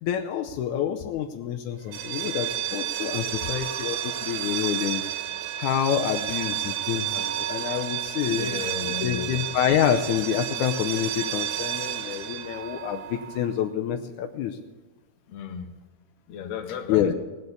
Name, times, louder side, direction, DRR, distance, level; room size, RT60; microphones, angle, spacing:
voice 1, 0.0-5.0 5.6-8.5 9.0-14.6 16.9-17.1, left 9 dB, 85° left, 3 dB, 1.8 m, -27 dB
sound 1, 1.9-13.6, right 12 dB, 85° right, 2.9 m, -31 dB
voice 2, 8.3-9.4 15.3-15.7 16.3-17.1, left 7 dB, 60° left, 6 dB, 1.9 m, -34 dB
18.5 x 6.7 x 8.3 m, 1.3 s
omnidirectional pair, 4.3 m